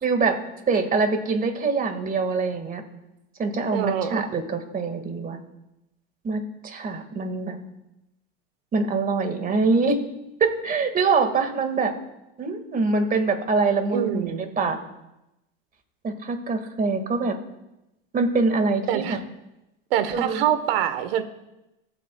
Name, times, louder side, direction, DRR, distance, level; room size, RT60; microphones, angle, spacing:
voice 1, 0.0-0.4 0.7-2.8 3.4-5.4 6.2-7.6 8.7-10.0 10.4-11.9 12.4-14.8 16.0-17.4 18.1-19.2 20.1-20.4, right 4 dB, 30° right, 6 dB, 1.9 m, -24 dB
voice 2, 3.7-4.2 13.9-14.4 18.9-19.2 19.9-21.2, right 10 dB, 75° right, 11 dB, 1.2 m, -25 dB
22.5 x 8.4 x 2.3 m, 0.93 s
hypercardioid pair, 95°, 29 cm